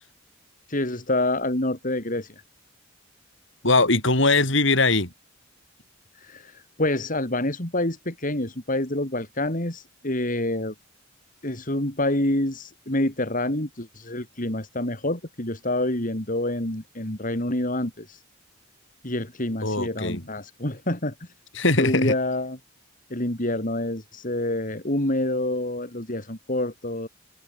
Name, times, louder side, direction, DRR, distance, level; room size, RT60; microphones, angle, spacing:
voice 1, 0.7-2.3 6.1-10.7 11.4-18.2 19.0-21.3 21.8-22.6 23.1-27.1, left 1 dB, 40° left, 4.0 m, -27 dB
voice 2, 3.6-5.1 19.6-20.2 21.6-22.1, left 3 dB, 65° left, 7.4 m, -21 dB
open air
head